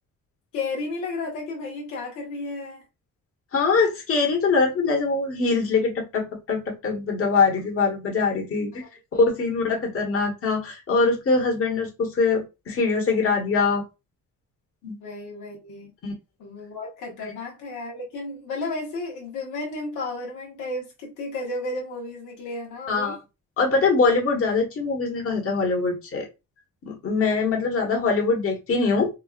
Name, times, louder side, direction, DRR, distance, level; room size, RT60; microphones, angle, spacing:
voice 1, 0.5-2.8 9.1-9.2 15.0-15.9 16.4-23.2, left 2 dB, 85° left, 1.3 m, -33 dB
voice 2, 3.5-8.8 9.1-13.8 14.8-15.0 16.0-16.1 17.2-17.3 22.9-23.2 23.6-26.3 26.8-29.1, left 4 dB, 50° left, 1.4 m, -23 dB
4.5 x 2.4 x 2.4 m
cardioid pair, 90°, 30 cm